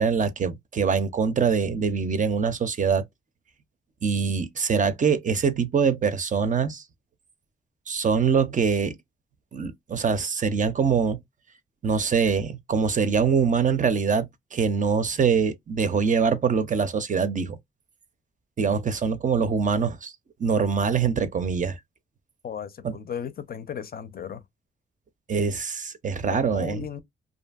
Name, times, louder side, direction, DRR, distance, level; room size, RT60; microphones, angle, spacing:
voice 1, 0.0-3.0 4.0-6.8 7.9-9.0 9.5-11.2 11.8-17.6 18.6-20.1 20.4-21.8 22.8-23.0 25.3-26.8, right 6 dB, 40° right, 0.5 m, -24 dB
voice 2, 22.4-24.4 26.3-27.0, left 8 dB, 45° left, 0.5 m, -35 dB
2.6 x 2.5 x 2.3 m
cardioid pair, 105°, 21 cm